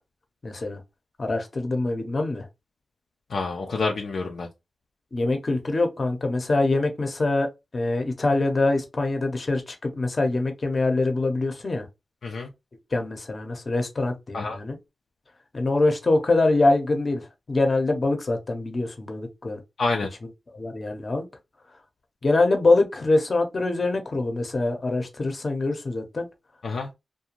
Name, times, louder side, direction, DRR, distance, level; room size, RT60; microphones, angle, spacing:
voice 1, 0.4-0.8 1.2-2.5 5.1-7.5 7.7-11.8 12.9-14.8 15.5-19.6 20.5-21.2 22.2-26.3, left 2 dB, 50° left, 0.7 m, -24 dB
voice 2, 3.3-4.5 12.2-12.5 14.3-14.6 19.8-20.1 26.6-26.9, left 3 dB, 75° left, 0.4 m, -27 dB
2.4 x 2.2 x 2.9 m
cardioid pair, 55°, 0 cm